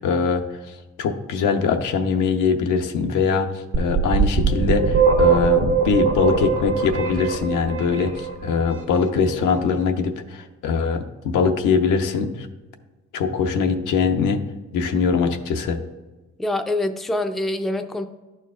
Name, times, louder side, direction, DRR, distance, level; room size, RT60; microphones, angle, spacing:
voice 1, 0.0-12.5 13.1-14.4 14.7-15.8, left 5 dB, 85° left, 5 dB, 0.7 m, -22 dB
sound 1, 3.7-8.6, right 5 dB, 70° right, 1.2 m, -20 dB
voice 2, 16.4-18.1, left 1 dB, ahead, 7 dB, 0.4 m, -25 dB
11.0 x 4.5 x 2.4 m, 1.2 s
cardioid pair, 90°, 30 cm